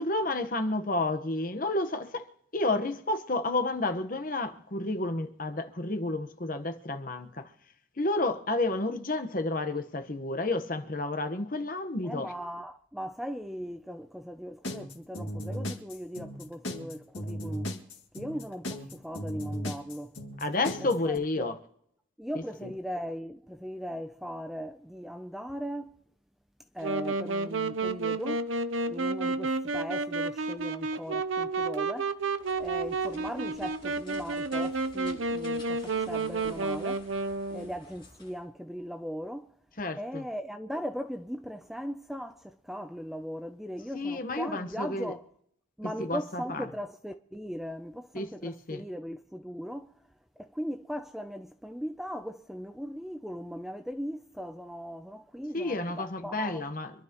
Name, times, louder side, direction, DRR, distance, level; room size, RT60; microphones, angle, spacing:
voice 1, 0.0-2.3 2.5-7.5 8.0-12.3 20.4-21.6 22.3-22.7 39.8-40.2 43.9-45.1 45.8-46.7 48.1-48.8 55.5-57.0, left 2 dB, 45° left, 1.1 m, -31 dB
voice 2, 12.0-17.8 18.1-20.2 20.8-21.5 22.2-26.0 26.7-28.5 28.9-37.1 37.5-39.5 40.0-45.2 45.8-50.0 50.4-56.6, equal, ahead, 0.4 m, -38 dB
sound 1, 14.6-21.2, equal, 70° left, 2.1 m, -36 dB
Wind instrument woodwind instrument, 26.8-37.7, right 3 dB, 75° right, 0.7 m, -31 dB
sound 2, 32.4-38.4, left 1 dB, 25° left, 7.5 m, -53 dB
26.0 x 11.5 x 3.0 m
head